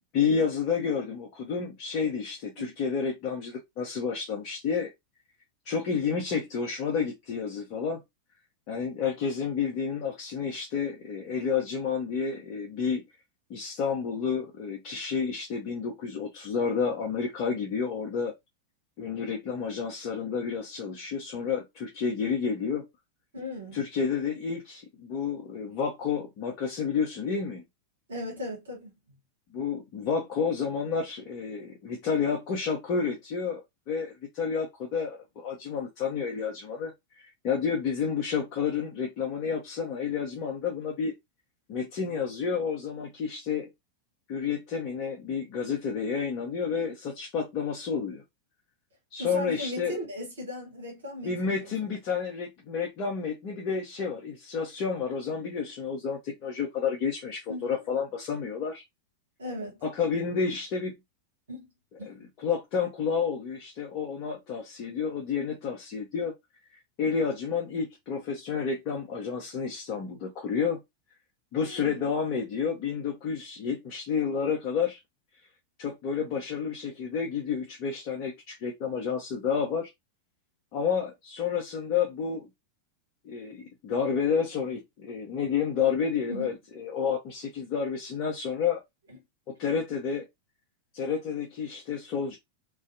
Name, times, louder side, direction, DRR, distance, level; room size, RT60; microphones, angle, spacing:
voice 1, 0.1-4.9 5.7-8.0 8.7-13.0 13.5-18.3 19.0-22.8 23.7-27.6 29.5-33.6 33.9-41.1 41.7-43.7 44.3-48.2 49.1-50.0 51.2-58.8 59.8-60.9 62.0-66.3 67.0-70.8 71.5-75.0 75.8-79.9 80.7-82.5 83.2-88.8 89.6-90.2 90.9-92.4, left 6 dB, 40° left, 0.6 m, -30 dB
voice 2, 23.3-23.8 28.1-28.9 49.2-51.7 57.5-57.8 59.4-59.8 61.5-61.7 62.0-62.1 71.6-72.1 86.3-86.5, left 1 dB, 70° right, 1.1 m, -37 dB
2.5 x 2.2 x 2.5 m
figure-of-eight pair, 90°, 0 cm